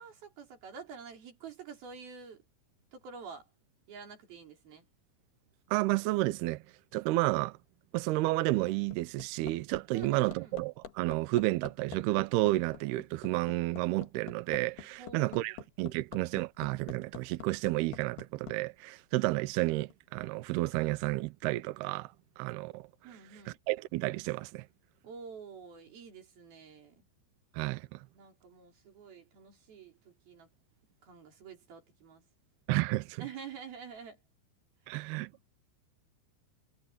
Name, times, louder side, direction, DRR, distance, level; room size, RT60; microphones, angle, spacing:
voice 1, 0.0-2.4 2.9-3.5 3.9-4.8 9.9-10.5 15.0-15.6 23.0-23.6 25.0-27.0 28.2-30.5 31.0-32.2 33.2-34.2 35.3-35.4, right 6 dB, 50° right, 6.2 m, -48 dB
voice 2, 5.7-6.6 6.9-7.6 7.9-22.9 23.5-24.7 27.5-28.1 32.7-33.3 34.9-35.3, right 19 dB, 90° right, 2.2 m, -31 dB
Hammer, 8.4-18.6 19.9-20.0, left 9 dB, 60° left, 3.5 m, -46 dB
omnidirectional pair, 5.6 m